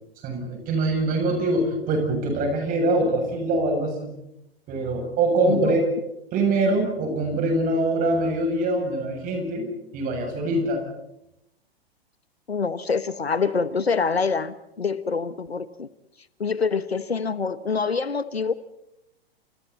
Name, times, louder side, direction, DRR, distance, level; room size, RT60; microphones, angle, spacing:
voice 1, 0.2-4.1 4.7-5.8 6.3-9.7 9.9-10.8, right 2 dB, 25° right, 2 dB, 7.7 m, -23 dB
voice 2, 5.4-5.8 12.5-15.9 16.4-18.5, left 5 dB, 75° left, 15 dB, 1.2 m, -25 dB
30.0 x 28.0 x 4.2 m, 0.85 s
figure-of-eight pair, 105°, 31 cm